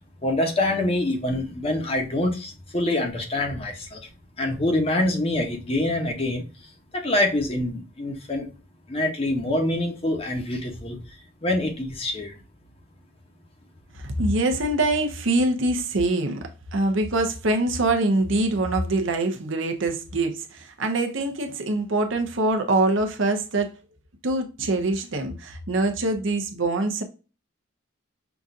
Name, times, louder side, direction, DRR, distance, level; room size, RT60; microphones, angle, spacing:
voice 1, 0.2-4.1 4.4-6.5 6.9-8.5 8.9-11.0 11.4-12.4, left 1 dB, 30° left, 0.8 m, -25 dB
voice 2, 13.9-23.7 24.2-27.0, right 2 dB, 65° right, 0.8 m, -24 dB
5.9 x 2.5 x 2.5 m
head